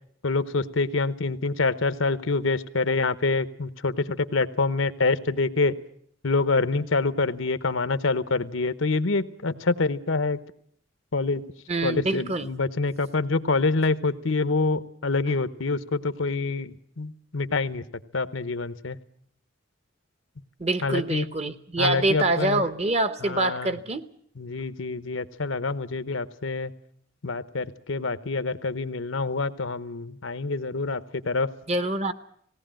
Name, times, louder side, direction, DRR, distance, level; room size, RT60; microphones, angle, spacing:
voice 1, 0.2-5.8 6.2-10.4 11.1-11.4 11.8-17.8 18.1-19.0 20.8-21.3 21.8-22.6 23.2-23.8 24.4-26.7 27.2-31.5, left 3 dB, 80° left, 14 dB, 0.9 m, -26 dB
voice 2, 11.7-12.5 20.6-24.1 31.7-32.1, right 2 dB, 30° right, 12 dB, 0.9 m, -25 dB
19.0 x 17.5 x 8.9 m, 0.64 s
head